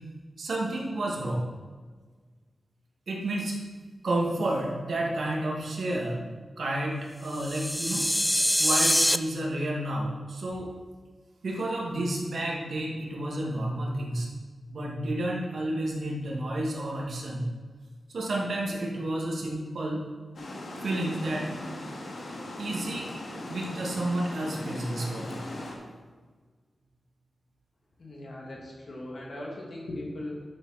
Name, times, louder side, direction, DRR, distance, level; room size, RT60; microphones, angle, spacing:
voice 1, 0.4-1.4 3.1-3.6 4.0-6.2 6.6-8.0 8.6-10.7 11.4-14.3 14.7-17.4 18.1-20.0 20.8-21.5 22.6-23.1 23.5-25.5, right 1 dB, 75° right, -2 dB, 2.2 m, -30 dB
sound 1, 7.3-9.2, equal, 5° left, 0.4 m, -24 dB
Water, 20.3-25.7, left 1 dB, 75° left, 2.4 m, -39 dB
voice 2, 28.0-30.4, left 1 dB, 55° left, -2 dB, 2.7 m, -39 dB
12.0 x 7.4 x 4.3 m, 1.5 s
wide cardioid pair, 115°, 0 cm